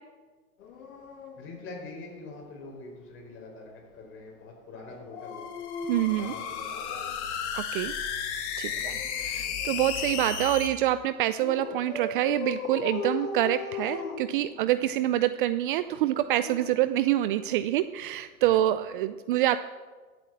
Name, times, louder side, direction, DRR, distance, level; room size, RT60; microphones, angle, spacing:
Dog, 0.6-2.5 4.9-7.3 8.6-10.2 11.4-14.9 15.9-17.6 18.8-19.0, left 5 dB, 70° left, 2.5 m, -39 dB
voice 1, 1.4-5.5 6.2-7.1 8.6-8.8 18.4-18.6, left 3 dB, 30° left, 0 dB, 4.9 m, -44 dB
sound 1, 5.3-10.7, left 7 dB, 50° left, 2.4 m, -33 dB
voice 2, 5.9-6.3 7.5-7.9 8.6-19.6, right 13 dB, 40° right, 12 dB, 0.5 m, -26 dB
14.5 x 8.5 x 7.8 m, 1.4 s
hypercardioid pair, 125°, 43 cm